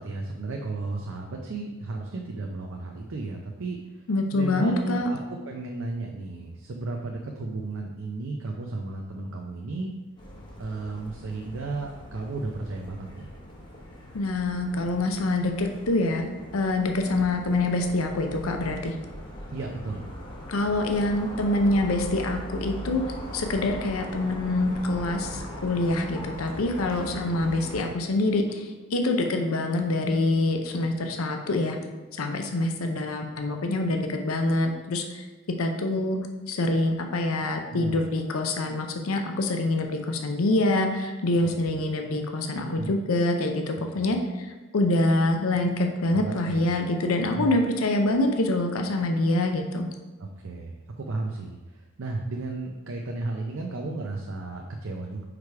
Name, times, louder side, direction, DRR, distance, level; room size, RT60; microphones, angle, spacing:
voice 1, 0.0-9.9 10.6-13.3 19.5-20.1 37.7-38.0 41.4-41.8 42.6-43.0 43.9-44.1 46.1-46.7 47.3-47.6 50.2-55.2, right 3 dB, 65° right, 1 dB, 0.5 m, -34 dB
voice 2, 4.1-5.1 14.1-18.9 20.5-23.0 23.3-31.8 32.1-35.3 35.6-36.2 36.5-49.9, left 2 dB, 80° left, 4 dB, 0.6 m, -25 dB
sound 1, 10.2-27.8, equal, 20° left, 0.8 m, -40 dB
4.9 x 4.8 x 4.7 m, 1.2 s
head